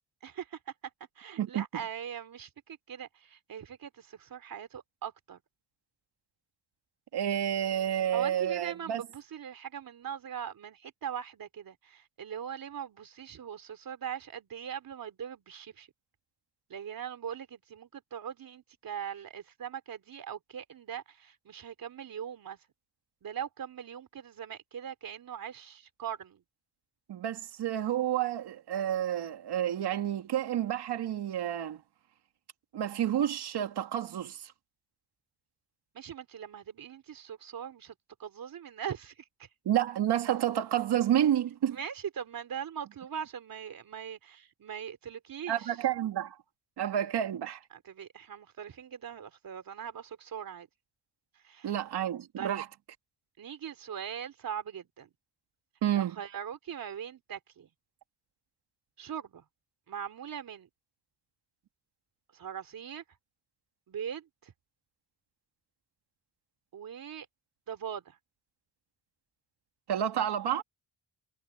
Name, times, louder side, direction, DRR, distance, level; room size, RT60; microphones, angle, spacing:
voice 1, 0.2-0.7 1.2-5.4 8.1-15.9 16.7-22.6 23.2-26.4 35.9-37.9 38.2-39.5 41.7-45.8 47.7-50.7 51.4-51.8 52.4-52.7 53.4-55.1 55.9-57.7 59.0-59.4 59.9-60.7 62.3-63.0 63.9-64.5 66.7-67.3 67.7-68.2, right 8 dB, 55° right, 3.5 m, -41 dB
voice 2, 7.1-9.0 27.1-31.8 32.7-34.5 39.6-41.8 45.5-46.4 46.8-47.6 51.6-52.6 55.8-56.2 69.9-70.6, right 10 dB, 75° right, 2.6 m, -30 dB
cardioid pair, 115°, 40 cm